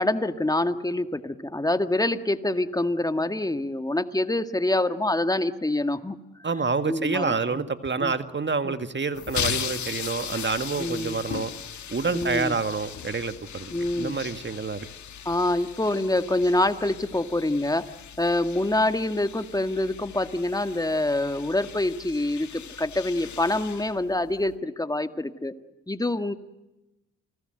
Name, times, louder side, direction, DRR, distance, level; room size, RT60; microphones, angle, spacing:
voice 1, 0.0-6.2 6.9-7.6 8.0-8.2 8.6-8.7 10.8-11.2 12.1-12.6 13.7-14.2 15.3-17.9 18.2-25.5 25.9-26.3, left 1 dB, 10° left, 9 dB, 1.9 m, -26 dB
voice 2, 6.4-11.5 11.9-14.9, right 4 dB, 30° right, 10 dB, 1.8 m, -28 dB
sound 1, 9.1-24.5, left 8 dB, 55° left, 1.8 m, -38 dB
29.0 x 19.5 x 7.9 m, 0.99 s
hypercardioid pair, 50°, 34 cm